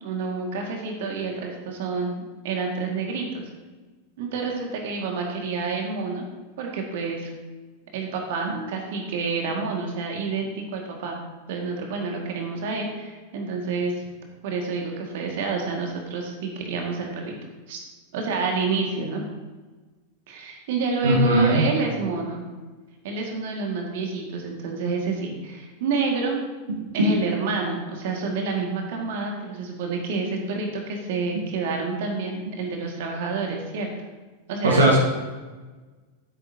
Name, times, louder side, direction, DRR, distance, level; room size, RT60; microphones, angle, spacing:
voice 1, 0.0-3.5 4.2-6.3 6.6-7.3 7.9-11.2 11.5-14.0 14.4-17.4 17.7-17.8 18.1-19.2 20.3-22.4 23.0-26.4 26.9-33.9 34.5-35.0, right 4 dB, 50° right, 1 dB, 2.0 m, -28 dB
voice 2, 21.0-21.6 26.7-26.8 34.6-35.0, right 1 dB, 70° right, -2 dB, 1.7 m, -18 dB
15.0 x 8.3 x 2.9 m, 1.3 s
figure-of-eight pair, 90°, 0 cm